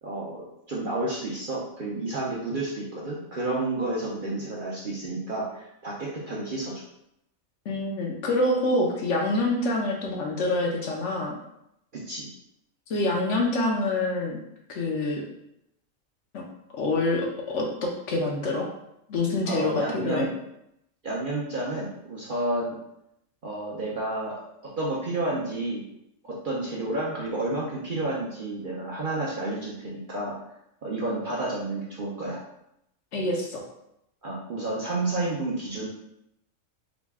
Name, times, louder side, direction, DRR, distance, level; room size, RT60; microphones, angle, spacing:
voice 1, 0.0-6.8 11.9-12.3 19.4-20.3 21.0-22.8 23.4-24.4 24.8-25.8 26.2-30.3 30.8-32.4 34.2-35.9, right 2 dB, 50° right, -5 dB, 0.6 m, -30 dB
voice 2, 7.7-11.4 12.9-14.4 14.7-15.2 16.3-16.4 16.7-18.7 19.1-20.3 33.1-33.6, left 2 dB, 65° left, 0 dB, 0.9 m, -26 dB
3.9 x 2.2 x 3.5 m, 0.80 s
omnidirectional pair, 1.5 m